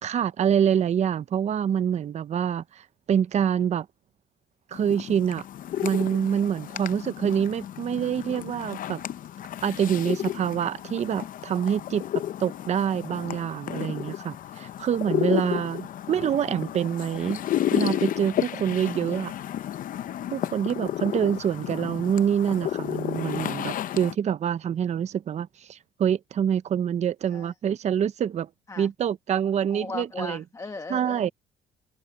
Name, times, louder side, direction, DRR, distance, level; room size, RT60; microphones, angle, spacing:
voice 1, 0.0-3.9 4.7-5.4 5.8-9.0 9.6-12.0 12.4-17.4 17.7-19.3 20.3-28.5 28.8-30.4 30.9-31.3, right 8 dB, 40° right, 0.7 m, -26 dB
sound 1, 4.7-24.1, left 11 dB, 55° left, 0.7 m, -32 dB
voice 2, 13.8-14.4 15.3-15.7 27.3-27.5 28.7-28.9 29.7-31.3, left 3 dB, 20° left, 1.5 m, -39 dB
open air
cardioid pair, 110°, 17 cm